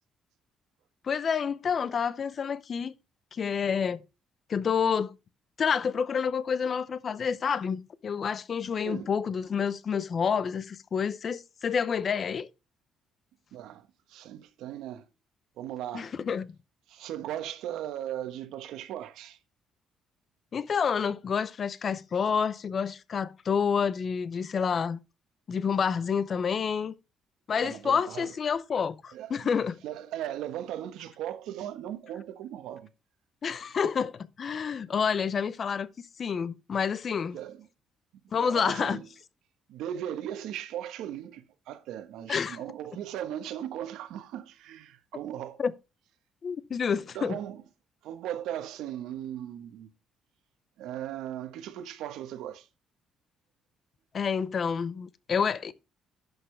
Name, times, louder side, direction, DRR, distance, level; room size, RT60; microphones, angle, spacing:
voice 1, 1.0-2.9 3.3-4.0 4.5-5.1 5.6-12.5 15.9-16.5 20.5-25.0 25.5-26.9 27.5-29.8 33.4-35.9 36.2-37.4 38.3-39.0 42.3-42.6 45.6-45.7 46.4-47.4 54.1-55.7, left 6 dB, 30° left, 0.6 m, -28 dB
voice 2, 13.5-15.0 15.6-16.1 16.9-19.4 27.6-28.3 29.1-29.4 29.8-32.9 37.3-37.6 38.3-39.1 39.7-45.6 47.1-47.6 48.0-49.9 50.8-52.7, right 11 dB, 85° right, 1.2 m, -38 dB
11.0 x 6.7 x 3.3 m
cardioid pair, 170°, 0 cm